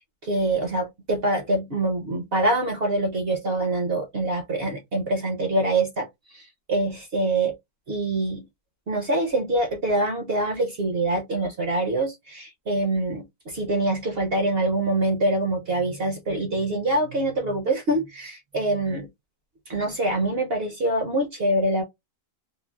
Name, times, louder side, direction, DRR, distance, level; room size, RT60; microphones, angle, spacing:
voice 1, 0.2-7.5 7.9-8.4 8.9-19.1 19.7-21.8, right 1 dB, 50° right, 0.7 m, -25 dB
3.8 x 2.0 x 2.3 m
omnidirectional pair, 1.7 m